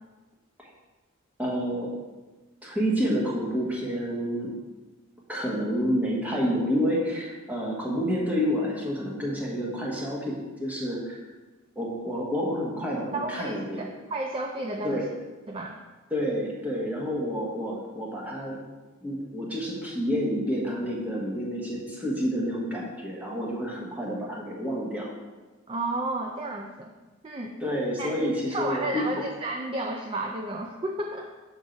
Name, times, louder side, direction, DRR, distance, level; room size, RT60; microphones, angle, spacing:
voice 1, 1.4-1.9 2.6-4.5 5.3-11.2 11.7-13.8 14.8-15.0 16.1-18.6 19.0-25.1 27.6-29.2, equal, 5° right, -4 dB, 1.2 m, -29 dB
voice 2, 13.1-15.1 15.5-15.8 25.7-26.9 27.2-27.6 28.0-31.3, right 2 dB, 25° right, 1 dB, 0.4 m, -32 dB
7.0 x 3.7 x 5.1 m, 1.2 s
head